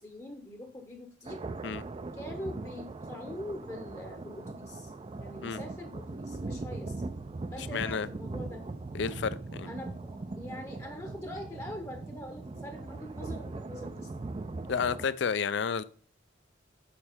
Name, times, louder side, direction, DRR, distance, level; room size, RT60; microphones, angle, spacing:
voice 1, 0.0-1.4 2.1-4.9 5.2-7.0 7.5-8.6 9.6-14.1, left 1 dB, 15° left, 0.7 m, -43 dB
sound 1, 1.2-15.1, right 3 dB, 30° right, 0.3 m, -40 dB
voice 2, 7.6-8.1 8.9-9.7 14.7-15.8, left 6 dB, 65° left, 0.4 m, -31 dB
6.7 x 4.2 x 4.3 m
head